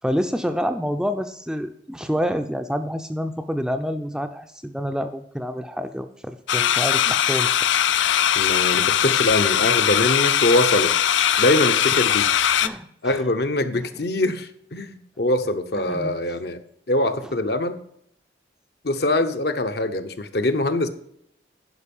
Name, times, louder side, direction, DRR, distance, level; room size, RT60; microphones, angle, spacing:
voice 1, 0.0-7.6 12.6-13.2 13.8-13.9 15.7-16.1 17.2-17.3, equal, 5° right, 7 dB, 0.4 m, -28 dB
sound 1, 6.5-12.7, left 10 dB, 90° left, 0.5 m, -20 dB
voice 2, 8.3-10.9 11.4-12.3 13.0-16.6 16.9-17.8 18.8-20.9, left 1 dB, 60° left, 8 dB, 0.8 m, -23 dB
11.0 x 5.3 x 5.4 m, 0.72 s
head